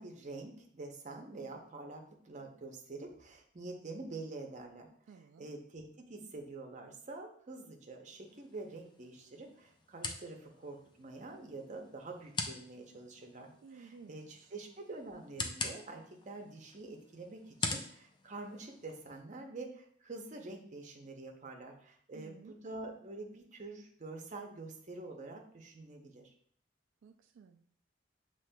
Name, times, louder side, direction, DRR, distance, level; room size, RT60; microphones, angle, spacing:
voice 1, 0.0-4.9 5.4-26.3, right 2 dB, 40° right, 2 dB, 0.7 m, -47 dB
voice 2, 5.1-5.5 13.6-14.5 22.1-22.6 27.0-27.7, right 5 dB, 85° right, 6 dB, 0.3 m, -55 dB
sound 1, 8.2-19.2, left 3 dB, 25° left, 0.4 m, -44 dB
7.2 x 3.0 x 2.2 m, 0.62 s
head